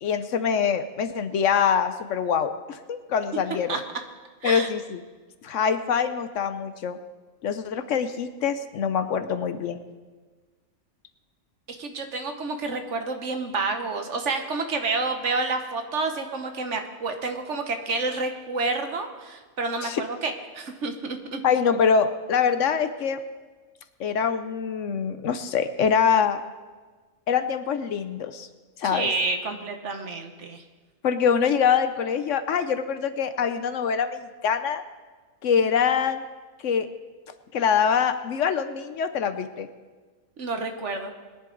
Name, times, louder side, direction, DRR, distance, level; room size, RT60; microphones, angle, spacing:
voice 1, 0.0-3.8 4.4-5.0 5.4-7.0 7.4-9.8 19.8-20.0 21.4-23.2 24.0-26.4 27.3-28.5 28.8-29.1 31.0-34.8 35.4-36.2 36.6-36.9 37.5-39.7, left 7 dB, 65° left, 10 dB, 1.0 m, -24 dB
voice 2, 11.7-21.4 28.8-30.6 40.4-41.1, right 3 dB, 60° right, 6 dB, 1.4 m, -29 dB
21.0 x 10.5 x 3.9 m, 1.4 s
omnidirectional pair, 1.5 m